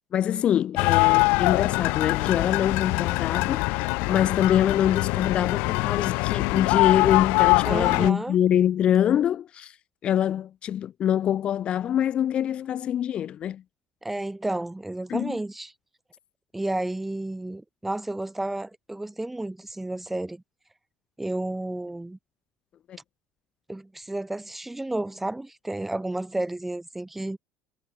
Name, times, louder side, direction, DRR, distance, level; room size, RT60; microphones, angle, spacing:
voice 1, 0.1-9.8 10.0-13.6 15.1-15.4 22.9-23.0, left 10 dB, 40° left, 2.2 m, -24 dB
sound 1, 0.8-8.1, left 29 dB, 75° left, 1.5 m, -23 dB
voice 2, 7.6-8.4 14.0-15.7 16.5-20.4 21.2-22.2 23.7-27.4, right 2 dB, 5° right, 4.2 m, -31 dB
cardioid pair, 140°, 3 cm